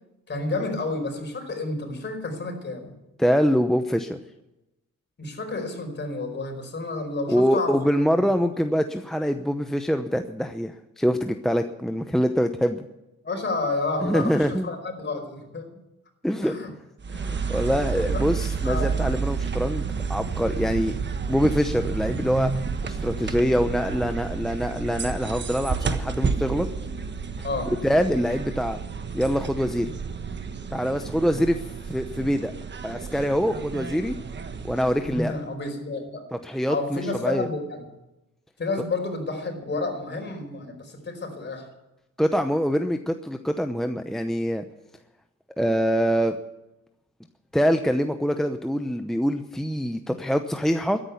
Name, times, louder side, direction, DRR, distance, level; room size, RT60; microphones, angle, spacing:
voice 1, 0.3-2.9 5.2-7.8 13.2-15.8 16.4-16.7 17.1-17.2 17.5-17.7 17.9-18.2 18.6-19.1 27.4-27.7 35.1-36.2 36.7-37.8 38.6-41.7, left 3 dB, 35° left, 4 dB, 4.8 m, -30 dB
voice 2, 3.2-4.2 7.3-12.9 14.0-14.7 16.2-16.6 17.1-20.9 21.3-22.5 22.8-26.7 27.7-28.8 29.1-29.9 30.7-32.5 32.8-34.1 34.6-35.3 36.3-37.5 42.2-44.6 45.6-46.4 47.5-51.0, equal, ahead, 7 dB, 0.8 m, -24 dB
sound 1, 17.0-35.5, right 5 dB, 35° right, 1.4 m, -30 dB
13.5 x 10.0 x 9.5 m, 0.96 s
cardioid pair, 90°, 30 cm